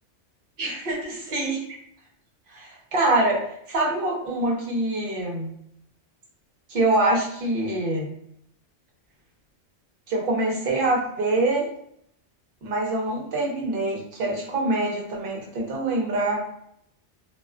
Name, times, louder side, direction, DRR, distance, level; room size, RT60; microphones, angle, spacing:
voice 1, 0.6-1.6 2.5-3.4 3.7-5.5 6.7-8.1 10.1-11.7 12.6-16.4, right 2 dB, 55° right, -1 dB, 0.9 m, -25 dB
2.4 x 2.3 x 2.3 m, 0.71 s
omnidirectional pair, 1.2 m